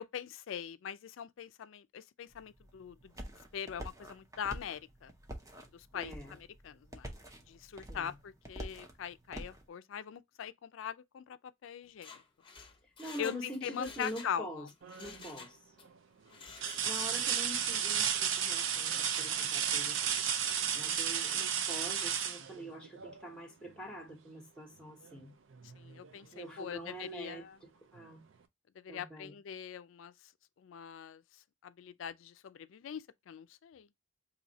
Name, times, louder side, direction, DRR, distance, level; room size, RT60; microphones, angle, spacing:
voice 1, 0.0-3.1 3.5-5.1 5.7-7.1 7.5-12.1 13.2-14.7 25.8-27.5 28.8-30.1 30.6-31.2 31.6-33.9, left 8 dB, 80° left, 0.4 m, -42 dB
sound 1, 2.3-9.6, equal, 15° right, 0.7 m, -47 dB
voice 2, 5.9-6.4 7.9-8.2 13.0-14.7 14.9-15.6 16.8-20.2 20.7-25.3 26.3-27.4 27.9-28.2 28.9-29.4, equal, 5° left, 1.1 m, -45 dB
Mechanisms, 11.9-14.4 14.7-15.9 16.3-17.3 17.6-17.7, left 4 dB, 25° left, 0.7 m, -51 dB
sound 2, 14.8-15.3 15.9-16.0 16.6-23.3 25.0-25.2 25.6-26.7 28.0-28.1, right 8 dB, 80° right, 0.5 m, -33 dB
2.7 x 2.7 x 3.9 m
head